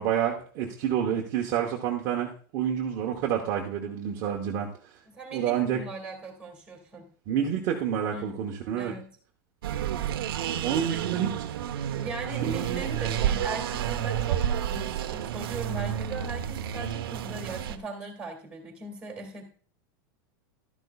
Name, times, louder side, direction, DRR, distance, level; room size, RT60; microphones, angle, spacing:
voice 1, 0.0-4.7 5.3-5.8 7.3-8.9 10.6-11.3 12.5-13.1, right 9 dB, 35° right, 0 dB, 1.0 m, -28 dB
voice 2, 5.1-7.1 8.1-8.4 8.8-9.2 10.8-11.2 11.9-19.4, right 3 dB, 10° right, 2 dB, 2.1 m, -39 dB
sound 1, 9.6-17.8, right 10 dB, 90° right, 0.9 m, -30 dB
12.5 x 10.5 x 2.3 m, 0.43 s
supercardioid pair, 170°, 12 cm